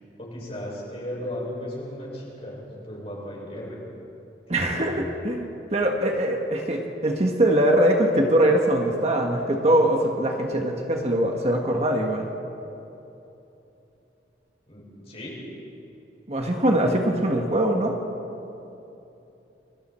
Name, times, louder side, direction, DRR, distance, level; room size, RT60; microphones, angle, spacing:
voice 1, 0.2-3.8 4.5-4.9 14.7-15.3, left 1 dB, 35° left, -4 dB, 6.5 m, -36 dB
voice 2, 4.5-12.3 16.3-18.0, right 1 dB, 35° right, 2 dB, 1.5 m, -22 dB
29.5 x 22.0 x 4.4 m, 2.9 s
head